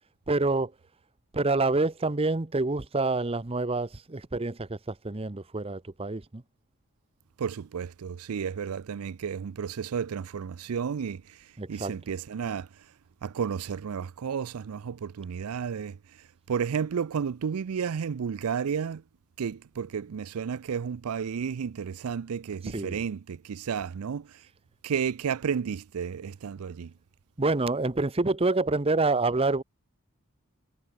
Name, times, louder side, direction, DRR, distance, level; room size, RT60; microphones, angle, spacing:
voice 1, 0.3-0.7 1.3-6.4 11.6-11.9 22.7-23.0 27.4-29.6, right 3 dB, 25° right, 0.8 m, -27 dB
voice 2, 7.4-12.7 13.2-16.0 16.5-19.0 19.4-24.4 24.8-26.9, right 7 dB, 80° right, 0.4 m, -32 dB
head